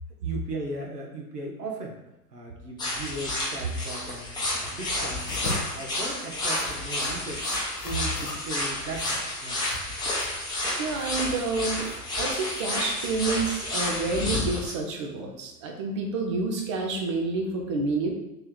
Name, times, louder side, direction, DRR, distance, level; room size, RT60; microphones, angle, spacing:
voice 1, 0.2-2.0 2.3-4.4 4.7-7.5 7.8-9.6, right 2 dB, 80° right, 0 dB, 1.1 m, -37 dB
sound 1, 2.8-14.7, left 1 dB, 10° left, 0.8 m, -30 dB
sound 2, 5.2-13.1, left 2 dB, 90° left, 1.0 m, -40 dB
voice 2, 10.8-11.8 12.2-18.1, right 3 dB, 25° right, 2 dB, 0.3 m, -29 dB
3.4 x 2.9 x 3.6 m, 0.96 s
figure-of-eight pair, 105°, 47 cm